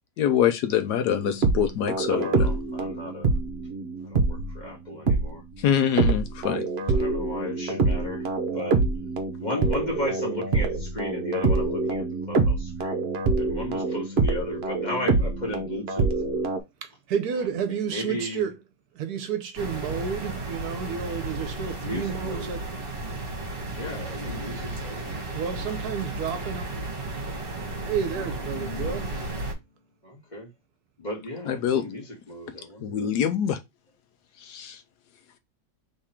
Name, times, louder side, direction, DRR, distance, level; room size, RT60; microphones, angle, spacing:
voice 1, 0.2-2.3 5.6-6.6 31.5-31.8 32.8-33.6 34.4-34.8, left 9 dB, 75° left, 1.1 m, -24 dB
sound 1, 1.2-4.6 5.1-5.3 6.0-16.6, right 3 dB, 50° right, 0.8 m, -25 dB
voice 2, 2.1-3.3 4.0-5.4 6.9-8.3 8.5-8.8 9.4-13.0 13.4-16.1 17.9-18.4 21.8-22.5 23.8-25.1 28.1-28.2 28.5-29.3 30.0-30.5 31.0-33.1, left 1 dB, 25° left, 1.7 m, -35 dB
voice 3, 16.8-18.6 18.9-22.7 25.3-26.7 27.8-29.1, right 7 dB, 70° right, 1.1 m, -31 dB
sound 2, 19.6-29.5, right 2 dB, 35° right, 1.5 m, -34 dB
3.6 x 3.3 x 4.3 m
omnidirectional pair, 1.8 m